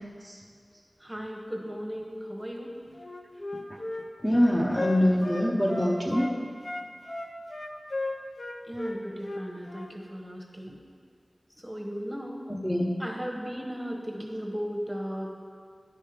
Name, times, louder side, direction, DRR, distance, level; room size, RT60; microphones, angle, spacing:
voice 1, 1.0-2.8 8.6-10.8 11.6-12.5 13.0-15.3, equal, 10° right, 0 dB, 1.2 m, -36 dB
Wind instrument woodwind instrument, 3.0-6.4 6.6-9.9, left 2 dB, 50° left, 0.7 m, -35 dB
voice 2, 4.2-6.3 12.5-12.9, equal, 10° left, -4 dB, 0.8 m, -24 dB
9.7 x 5.4 x 5.0 m, 2.1 s
wide cardioid pair, 65°, 0 cm